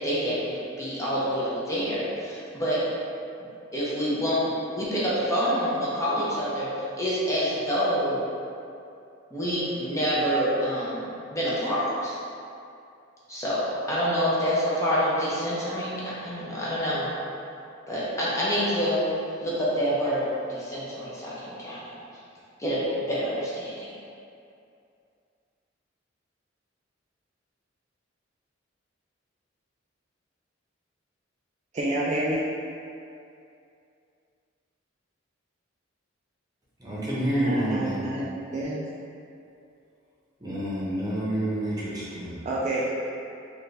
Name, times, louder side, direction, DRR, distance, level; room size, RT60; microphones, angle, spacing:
voice 1, 0.0-2.8 3.7-6.7 7.0-8.2 9.3-12.2 13.3-17.1 17.9-19.1 19.4-21.9 22.6-22.8 23.1-23.9, equal, 15° left, -9 dB, 0.8 m, -27 dB
voice 2, 31.7-32.4 37.4-38.3 38.5-38.9 42.4-43.0, right 1 dB, 35° right, -6 dB, 0.4 m, -28 dB
voice 3, 36.8-38.1 40.4-42.4, right 1 dB, 20° right, -9 dB, 1.0 m, -28 dB
4.3 x 2.5 x 3.3 m, 2.5 s
head